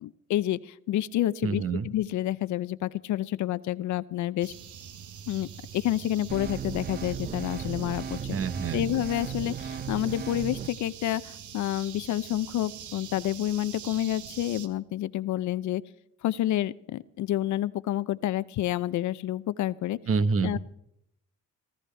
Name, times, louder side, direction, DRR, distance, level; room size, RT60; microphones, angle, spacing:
voice 1, 0.0-4.5 5.3-8.2 8.7-15.8 16.2-20.0 20.4-20.6, left 13 dB, 70° left, 18 dB, 0.6 m, -29 dB
voice 2, 1.4-1.9 8.3-8.8 20.1-20.6, right 5 dB, 50° right, 13 dB, 1.1 m, -27 dB
sound 1, 4.4-14.7, right 8 dB, 75° right, 1.3 m, -44 dB
sound 2, 6.3-10.7, right 7 dB, 30° right, 0.6 m, -36 dB
20.5 x 14.0 x 3.4 m, 0.75 s
cardioid pair, 90°, 30 cm